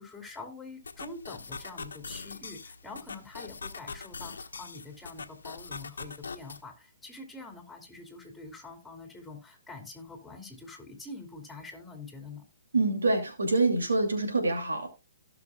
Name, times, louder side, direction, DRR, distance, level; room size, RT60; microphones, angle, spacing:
voice 1, 0.0-12.4, left 3 dB, 5° left, 4 dB, 2.8 m, -45 dB
sound 1, 0.8-6.6, left 4 dB, 80° left, 1.0 m, -42 dB
voice 2, 12.7-14.9, right 2 dB, 80° right, 4 dB, 2.6 m, -26 dB
17.0 x 6.0 x 2.3 m, 0.25 s
hypercardioid pair, 130°, 0 cm